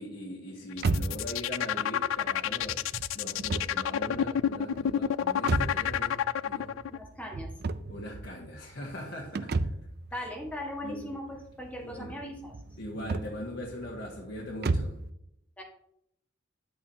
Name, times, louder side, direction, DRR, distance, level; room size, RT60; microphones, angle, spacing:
voice 1, 0.0-6.7 7.9-9.6 10.8-11.1 11.8-12.2 12.8-15.0, left 1 dB, 55° left, -4 dB, 1.6 m, -41 dB
sound 1, 0.7-7.0, left 9 dB, 75° left, 0.3 m, -29 dB
sound 2, 0.8-15.1, right 3 dB, 50° right, 0.4 m, -35 dB
voice 2, 6.9-7.5 10.1-12.5 15.6-15.7, left 1 dB, 5° left, -1 dB, 1.5 m, -39 dB
10.5 x 8.6 x 2.8 m, 0.75 s
head